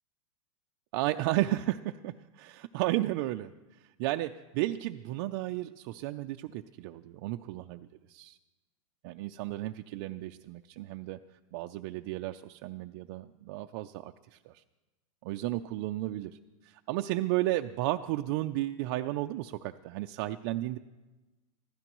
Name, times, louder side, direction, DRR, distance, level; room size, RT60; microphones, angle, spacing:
voice 1, 0.9-3.5 3.8-8.4 9.0-11.2 11.5-14.6 15.2-16.4 16.6-20.8, right 16 dB, 40° right, 6 dB, 0.4 m, -33 dB
24.0 x 15.5 x 3.0 m, 1.1 s
supercardioid pair, 160°, 17 cm